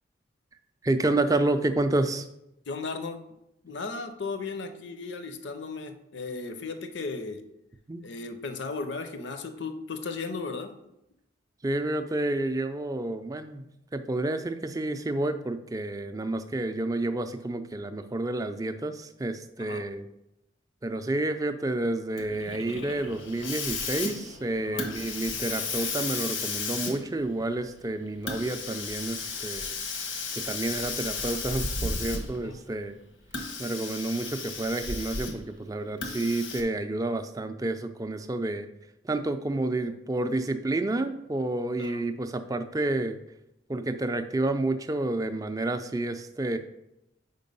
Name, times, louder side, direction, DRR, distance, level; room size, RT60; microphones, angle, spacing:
voice 1, 0.8-2.3 7.9-8.0 11.6-13.6 13.9-20.1 20.8-29.8 30.3-33.0 33.6-38.7 39.0-43.2 43.7-46.6, right 2 dB, 20° right, 8 dB, 0.3 m, -29 dB
voice 2, 2.7-3.2 3.6-7.4 8.0-10.7 19.6-19.8 24.6-24.9 32.3-32.6 41.8-42.0, left 4 dB, 65° left, 8 dB, 0.6 m, -36 dB
Hiss, 22.2-32.5 33.2-35.5 36.0-36.6, left 4 dB, 90° left, 1.1 m, -34 dB
5.2 x 4.6 x 5.3 m, 0.85 s
head